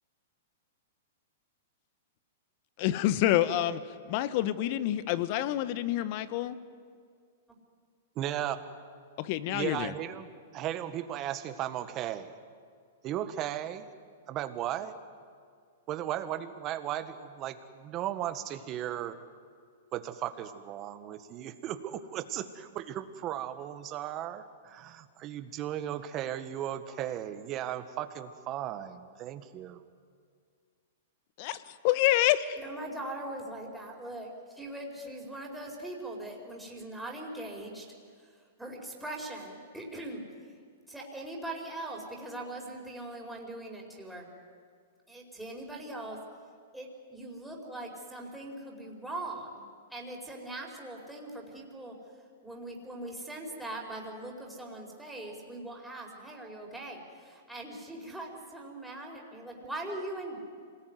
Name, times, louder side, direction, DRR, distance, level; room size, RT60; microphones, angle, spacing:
voice 1, 2.8-3.8 4.1-6.6 9.2-9.9 31.4-31.6 31.8-32.6, left 14 dB, 50° left, 14 dB, 1.2 m, -27 dB
voice 2, 8.1-8.6 9.5-10.3 10.5-12.3 13.0-13.9 14.3-15.0 15.9-19.2 19.9-29.8, right 11 dB, 35° right, 10 dB, 1.7 m, -36 dB
voice 3, 32.6-37.9 38.2-40.2 40.9-44.3 45.1-46.2 46.7-51.9 52.4-60.4, right 1 dB, 5° right, -1 dB, 4.9 m, -41 dB
26.0 x 19.5 x 9.5 m, 2.1 s
hypercardioid pair, 120°, 0 cm